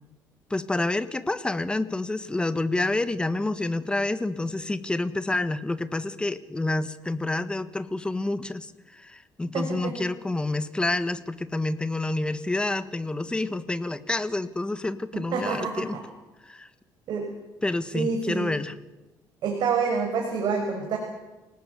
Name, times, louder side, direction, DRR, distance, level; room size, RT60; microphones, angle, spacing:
voice 1, 0.5-16.0 16.4-16.7 17.6-18.8, left 2 dB, 10° left, 12 dB, 1.5 m, -28 dB
voice 2, 9.5-9.9 15.3-16.0 17.1-17.3 17.9-18.5 19.4-21.0, right 5 dB, 65° right, 2 dB, 5.7 m, -27 dB
28.0 x 19.0 x 8.3 m, 1.1 s
cardioid pair, 125°, 8 cm